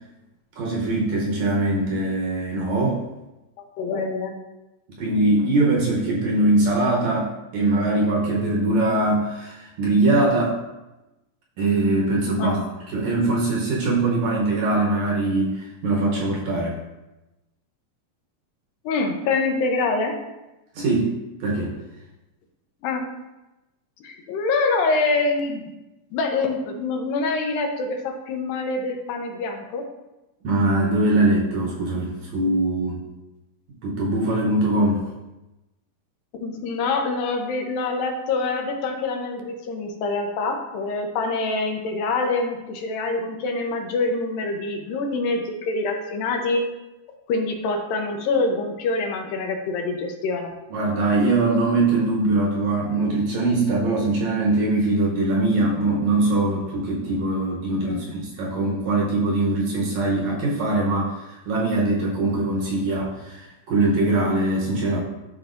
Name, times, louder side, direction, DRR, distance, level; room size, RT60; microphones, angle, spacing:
voice 1, 0.6-3.0 4.9-10.6 11.6-12.6 12.9-16.8 20.8-21.2 21.4-21.7 30.4-33.0 33.8-35.1 50.7-65.0, right 2 dB, 65° right, -3 dB, 2.0 m, -22 dB
voice 2, 3.6-4.4 12.4-12.7 18.8-20.2 22.8-23.1 24.0-25.7 26.1-29.8 36.4-46.6 47.3-50.5 57.8-58.1, left 3 dB, 80° left, 3 dB, 2.6 m, -25 dB
12.5 x 4.4 x 2.6 m, 1.0 s
omnidirectional pair, 4.0 m